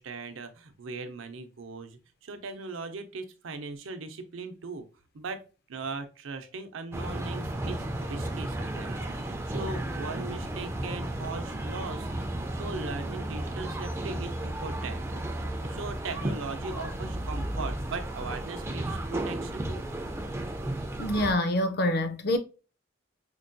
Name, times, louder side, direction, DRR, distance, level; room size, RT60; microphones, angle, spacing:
voice 1, 0.0-4.9 5.1-5.4 5.7-12.1 12.5-19.8, right 3 dB, 75° right, 0.6 m, -39 dB
sound 1, 6.9-21.3, right 1 dB, 15° right, 0.3 m, -34 dB
voice 2, 21.0-22.4, left 1 dB, 50° left, 0.4 m, -26 dB
4.5 x 2.2 x 2.5 m
head